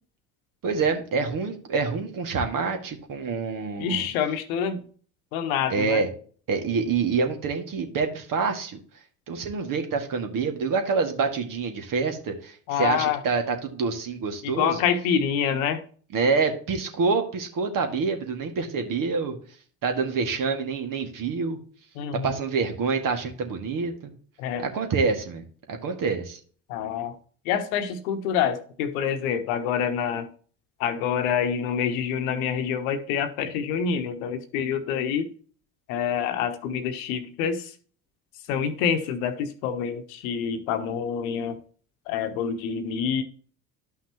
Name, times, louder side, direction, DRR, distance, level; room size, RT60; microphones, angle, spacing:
voice 1, 0.6-4.1 5.7-6.1 6.5-8.8 9.3-14.8 16.1-19.4 19.8-21.6 22.2-24.1 24.6-26.4, right 4 dB, 45° right, 2.1 m, -27 dB
voice 2, 3.8-4.8 5.3-6.0 12.7-13.2 14.4-15.8 22.0-22.4 24.4-24.6 26.7-27.1 27.4-30.3 30.8-35.3 35.9-37.7 38.5-41.6 42.1-43.2, left 7 dB, 65° left, 1.2 m, -27 dB
12.0 x 5.7 x 3.0 m
figure-of-eight pair, 60°, 44 cm